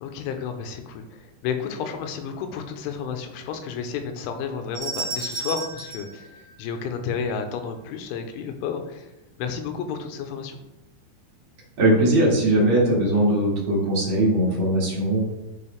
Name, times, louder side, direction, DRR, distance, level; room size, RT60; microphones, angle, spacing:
voice 1, 0.0-6.3 6.6-9.1 9.4-10.6, left 6 dB, 85° left, 6 dB, 3.1 m, -31 dB
sound 1, 4.7-7.2, right 3 dB, 55° right, 1.9 m, -33 dB
voice 2, 11.8-15.2, right 1 dB, 75° right, -5 dB, 1.1 m, -20 dB
11.0 x 4.9 x 3.3 m, 0.98 s
omnidirectional pair, 5.6 m